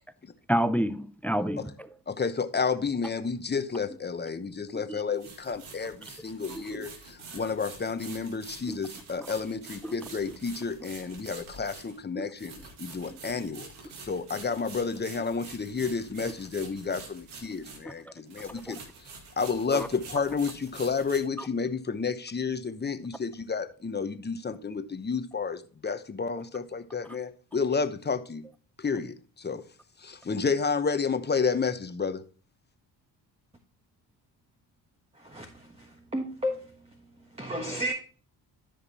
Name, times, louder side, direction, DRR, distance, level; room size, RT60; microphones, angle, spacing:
voice 1, 0.5-1.9 4.7-5.0 6.5-6.9 8.7-8.8 9.2-9.3 9.8-9.9 10.3-10.4 12.2-12.3 13.1-13.2 17.9-18.0 18.4-18.8 19.7-19.9 21.4-21.5, equal, 5° left, 0.4 m, -30 dB
voice 2, 2.1-12.5 12.8-13.7 14.0-18.8 19.4-28.4 28.8-29.6 30.0-32.2, left 5 dB, 20° left, 1.0 m, -31 dB
sound 1, 3.7-3.8 5.1-18.0 18.3-21.2, right 4 dB, 90° right, 2.1 m, -47 dB
voice 3, 35.1-37.0 37.3-37.9, equal, 10° right, 1.4 m, -34 dB
13.5 x 5.2 x 2.9 m
supercardioid pair, 65°, 47 cm